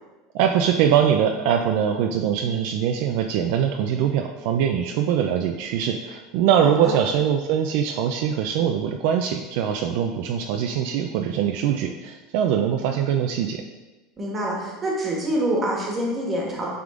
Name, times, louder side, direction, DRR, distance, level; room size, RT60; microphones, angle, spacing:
voice 1, 0.3-13.6, right 8 dB, 55° right, 4 dB, 0.4 m, -22 dB
voice 2, 14.2-16.7, right 1 dB, 20° right, -2 dB, 1.4 m, -26 dB
9.4 x 3.6 x 3.7 m, 1.1 s
supercardioid pair, 175°, 0 cm